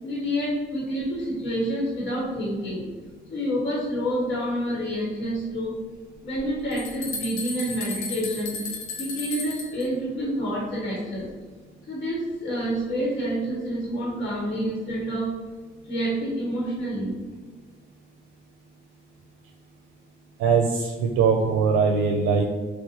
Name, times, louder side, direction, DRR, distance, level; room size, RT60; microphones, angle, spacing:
voice 1, 0.0-2.9 3.3-5.8 6.2-8.6 9.0-11.3 11.9-15.4 15.9-17.1, equal, 65° left, -5 dB, 1.4 m, -28 dB
sound 1, 6.3-6.4 6.7-9.9, left 3 dB, 85° left, 0.9 m, -34 dB
voice 2, 20.4-22.4, right 5 dB, 85° right, 1 dB, 0.5 m, -21 dB
4.1 x 2.4 x 4.0 m, 1.4 s
cardioid pair, 105°, 21 cm